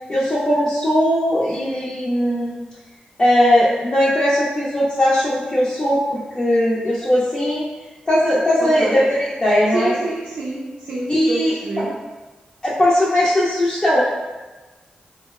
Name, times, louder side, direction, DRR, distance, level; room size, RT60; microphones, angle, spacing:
voice 1, 0.1-2.6 3.2-7.6 8.1-9.0 9.4-10.0 11.1-11.5 12.6-14.0, left 1 dB, 30° left, -8 dB, 0.5 m, -18 dB
voice 2, 8.6-9.1 9.7-12.0, right 2 dB, 70° right, -6 dB, 0.4 m, -27 dB
2.8 x 2.0 x 2.3 m, 1.2 s
cardioid pair, 65°, 3 cm